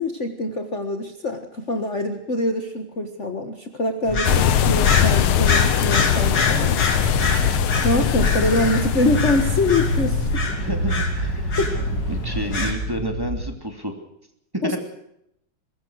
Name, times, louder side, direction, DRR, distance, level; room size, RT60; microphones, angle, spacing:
voice 1, 0.0-6.8 7.8-10.4 11.6-11.7 14.6-14.8, left 2 dB, 35° left, 6 dB, 1.7 m, -24 dB
sound 1, 4.1-12.7, left 3 dB, 55° left, 3.9 m, -26 dB
sound 2, 4.2-10.4, left 9 dB, 85° left, 1.9 m, -21 dB
sound 3, 6.4-13.4, right 1 dB, 70° right, 7.3 m, -29 dB
voice 2, 10.5-11.6 12.1-13.9 14.6-14.8, right 1 dB, 10° right, 4 dB, 2.8 m, -30 dB
23.0 x 21.0 x 6.5 m, 0.77 s
omnidirectional pair, 2.3 m